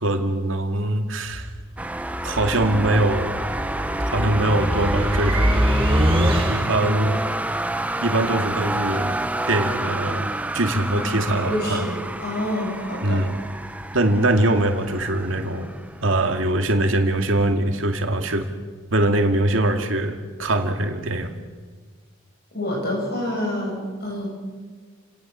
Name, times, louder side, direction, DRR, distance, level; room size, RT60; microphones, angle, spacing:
voice 1, 0.0-1.5 2.2-3.3 4.1-5.6 6.5-7.2 8.0-9.2 9.5-11.9 13.0-13.3 13.9-15.7 16.0-18.5 18.9-21.3, right 1 dB, 65° right, 5 dB, 2.4 m, -22 dB
sound 1, 1.3-6.9, equal, 25° right, 4.1 m, -24 dB
sound 2, 1.8-16.6, right 1 dB, 5° right, 0.7 m, -29 dB
voice 2, 10.9-11.9 12.2-13.2 22.5-24.3, left 1 dB, 50° left, -2 dB, 7.9 m, -27 dB
29.5 x 18.0 x 7.5 m, 1.5 s
head